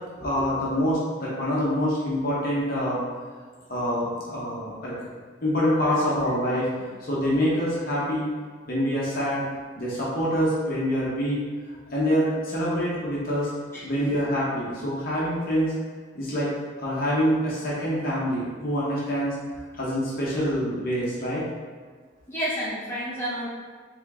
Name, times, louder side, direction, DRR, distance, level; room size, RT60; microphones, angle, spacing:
voice 1, 0.2-3.0 3.7-4.9 5.4-6.7 7.0-8.3 8.7-9.4 9.8-11.4 11.9-13.5 13.8-15.7 16.1-16.5 16.8-19.3 19.7-21.4, equal, 50° left, -7 dB, 1.1 m, -25 dB
voice 2, 22.3-23.5, equal, 15° left, -10 dB, 1.2 m, -30 dB
3.8 x 3.6 x 3.6 m, 1.5 s
head